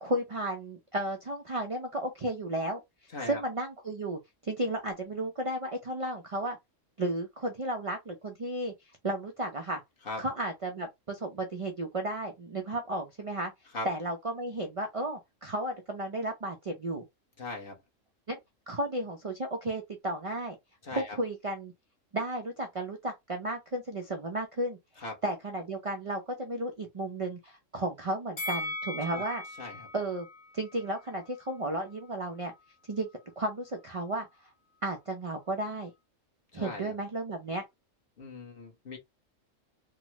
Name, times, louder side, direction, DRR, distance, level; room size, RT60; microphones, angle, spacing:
voice 1, 0.0-2.8 3.2-6.6 7.0-8.7 9.0-9.8 10.2-13.5 13.8-17.0 18.3-18.4 18.7-20.6 20.9-21.7 22.1-29.4 29.9-30.3 30.5-32.5 32.9-33.1 33.4-34.3 34.8-35.9 36.5-37.6, right 1 dB, 45° right, 0.4 m, -33 dB
voice 2, 17.4-17.8 20.8-21.2 25.0-25.1 29.1-29.2 29.6-29.9 36.5-36.9 38.2-39.0, left 2 dB, 45° left, 1.2 m, -39 dB
Bell, 28.4-31.6 31.9-32.0, left 2 dB, 80° left, 2.0 m, -39 dB
3.6 x 2.1 x 2.9 m
omnidirectional pair, 1.3 m